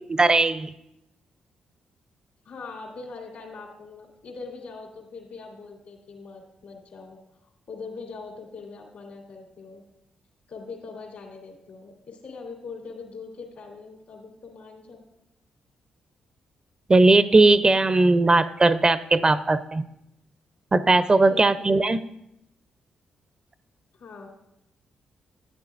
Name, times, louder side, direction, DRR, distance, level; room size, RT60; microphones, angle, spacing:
voice 1, 0.2-0.7 16.9-19.9 20.7-22.0, right 2 dB, 30° right, 14 dB, 0.5 m, -18 dB
voice 2, 2.4-7.2 7.7-9.8 10.5-15.0 21.2-21.9 23.9-24.3, left 4 dB, 75° left, 0 dB, 2.8 m, -41 dB
11.5 x 9.8 x 2.5 m, 0.85 s
supercardioid pair, 50°, 3 cm